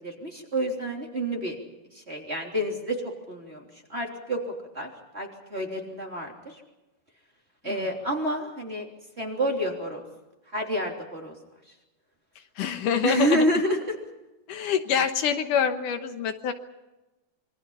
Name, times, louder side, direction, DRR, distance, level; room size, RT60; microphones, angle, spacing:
voice 1, 0.0-1.6 1.9-4.4 4.7-6.6 7.6-8.9 9.2-10.0 10.5-11.3 13.0-14.0, right 1 dB, 20° right, 1 dB, 3.3 m, -29 dB
voice 2, 12.6-13.4 14.5-16.5, left 7 dB, 75° left, 8 dB, 2.6 m, -26 dB
27.0 x 23.5 x 5.7 m, 1.1 s
omnidirectional pair, 3.9 m